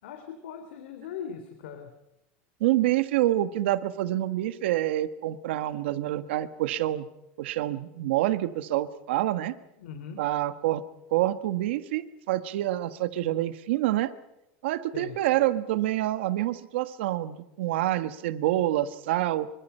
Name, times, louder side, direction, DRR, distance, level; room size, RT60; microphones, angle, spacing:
voice 1, 0.0-1.9 9.8-10.2 14.9-15.2, left 7 dB, 85° left, 6 dB, 3.3 m, -40 dB
voice 2, 2.6-7.1 7.4-9.5 10.2-10.8 11.1-14.1 14.6-19.5, right 14 dB, 80° right, 12 dB, 1.5 m, -27 dB
25.5 x 25.0 x 5.7 m, 0.90 s
supercardioid pair, 150°, 6 cm